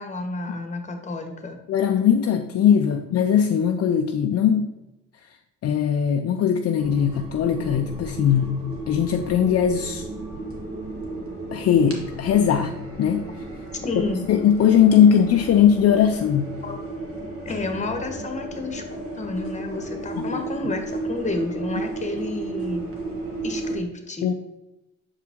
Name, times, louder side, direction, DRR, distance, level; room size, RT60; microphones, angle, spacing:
voice 1, 0.0-1.6 13.8-14.2 16.6-16.8 17.4-22.9 23.4-24.3, left 3 dB, 25° left, 5 dB, 1.1 m, -30 dB
voice 2, 1.7-4.7 5.6-8.6 8.9-10.1 11.5-12.7 13.0-13.3 14.0-16.5 20.2-20.4 24.2-24.3, left 8 dB, 55° left, 5 dB, 0.5 m, -20 dB
sound 1, 6.8-23.8, right 2 dB, 50° right, 1.5 m, -34 dB
6.4 x 4.7 x 3.6 m, 0.99 s
cardioid pair, 90°, 30 cm